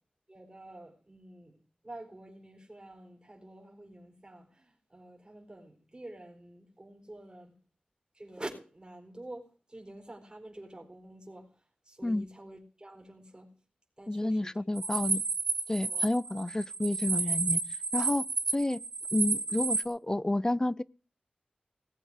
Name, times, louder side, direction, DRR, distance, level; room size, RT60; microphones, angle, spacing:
voice 1, 0.3-1.6 1.8-7.5 8.1-13.5 14.0-14.5 14.8-14.9 15.9-16.1 18.0-18.1, right 1 dB, 30° right, 4.5 m, -48 dB
voice 2, 14.1-15.2 15.7-17.6 17.9-18.2 18.5-18.8 19.1-20.8, left 1 dB, 20° left, 0.5 m, -30 dB
sound 1, 14.8-19.8, right 4 dB, 70° right, 1.1 m, -31 dB
19.0 x 7.8 x 5.0 m
cardioid pair, 45°, 3 cm